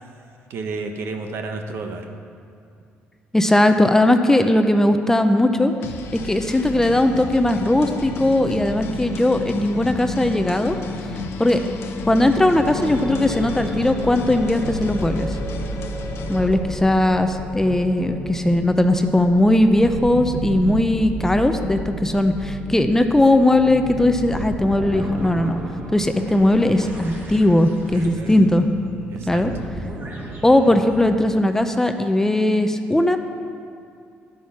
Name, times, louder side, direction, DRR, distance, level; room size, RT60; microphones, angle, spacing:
voice 1, 0.5-2.1 6.2-6.3 11.1-11.4 16.6-16.7 27.9-28.4 29.1-29.4, right 3 dB, 65° right, 5 dB, 1.2 m, -32 dB
voice 2, 3.3-5.7 6.1-10.8 11.4-11.6 12.1-15.4 16.3-25.6 25.9-28.7 29.3-29.5 30.4-33.2, left 1 dB, 10° left, 7 dB, 0.7 m, -18 dB
sound 1, 5.8-16.5, left 5 dB, 70° left, 0.9 m, -35 dB
Singing, 6.3-17.5, left 3 dB, 25° left, 1.1 m, -35 dB
sound 2, 12.6-31.0, right 2 dB, 45° right, 2.5 m, -32 dB
11.0 x 9.3 x 5.9 m, 2.4 s
cardioid pair, 90°, 5 cm